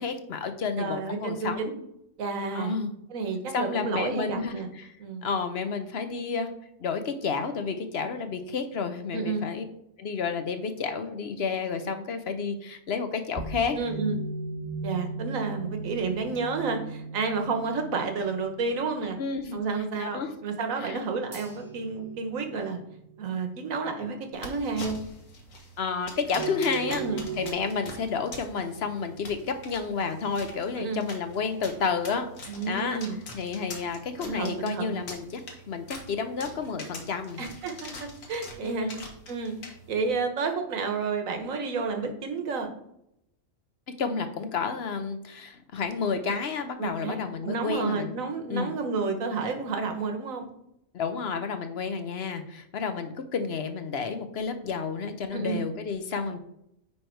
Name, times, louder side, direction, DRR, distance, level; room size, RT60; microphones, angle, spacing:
voice 1, 0.0-1.6 2.5-2.9 3.5-4.9 5.2-6.5 6.8-9.6 10.0-13.8 19.2-19.6 20.0-20.3 20.8-21.0 25.8-27.0 27.4-33.0 33.3-35.4 35.7-37.4 38.6-39.0 44.0-48.1 48.5-48.7 50.9-56.4, left 5 dB, 55° left, 8 dB, 0.9 m, -31 dB
voice 2, 0.8-1.8 2.2-2.8 3.1-4.7 5.0-5.3 9.1-9.5 13.8-14.2 14.8-19.2 19.5-22.8 23.2-25.0 26.9-27.3 30.7-31.0 32.5-33.2 34.2-35.0 37.4-38.9 39.3-39.5 39.9-42.7 46.8-47.2 47.4-50.5 55.3-55.6, right 4 dB, 90° right, 5 dB, 1.5 m, -30 dB
sound 1, 13.4-19.6 21.3-24.1 26.4-27.5, right 4 dB, 45° right, 2.6 m, -38 dB
sound 2, 24.3-40.1, left 2 dB, 85° left, 1.7 m, -44 dB
9.6 x 3.4 x 4.5 m, 0.78 s
omnidirectional pair, 1.4 m